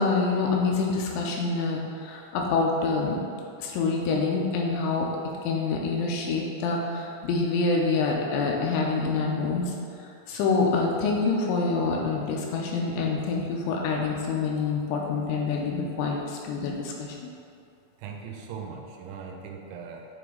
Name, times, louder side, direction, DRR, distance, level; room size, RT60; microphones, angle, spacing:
voice 1, 0.0-3.2 3.6-5.1 5.4-9.8 10.3-17.3, left 4 dB, 80° left, -1 dB, 2.9 m, -26 dB
voice 2, 18.0-20.1, right 6 dB, 85° right, 2 dB, 3.0 m, -39 dB
8.8 x 3.4 x 3.7 m, 2.5 s
omnidirectional pair, 5.4 m